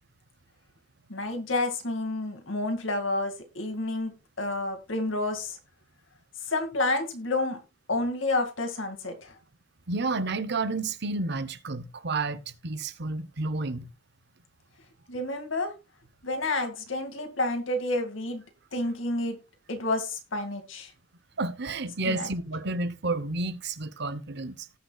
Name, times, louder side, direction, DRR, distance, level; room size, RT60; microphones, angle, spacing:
voice 1, 1.1-4.1 4.4-5.6 6.4-7.6 7.9-9.4 15.1-15.7 16.2-18.4 18.7-19.4 19.7-20.9 22.0-22.3, left 2 dB, 85° left, 2.3 m, -29 dB
voice 2, 9.9-13.9 21.4-24.6, right 3 dB, 60° right, 0.9 m, -31 dB
18.5 x 6.5 x 2.4 m
head